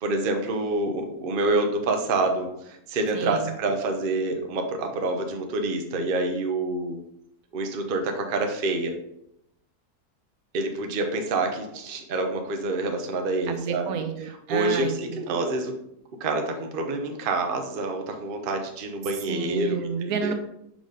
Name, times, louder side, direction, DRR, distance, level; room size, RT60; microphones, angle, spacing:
voice 1, 0.0-7.0 7.5-8.9 10.5-13.9 14.5-15.7 16.2-20.3, right 2 dB, 45° right, 4 dB, 0.8 m, -27 dB
voice 2, 3.1-3.6 13.5-15.4 19.3-20.3, right 6 dB, 75° right, 7 dB, 1.0 m, -30 dB
5.0 x 4.9 x 3.9 m, 0.78 s
omnidirectional pair, 1.6 m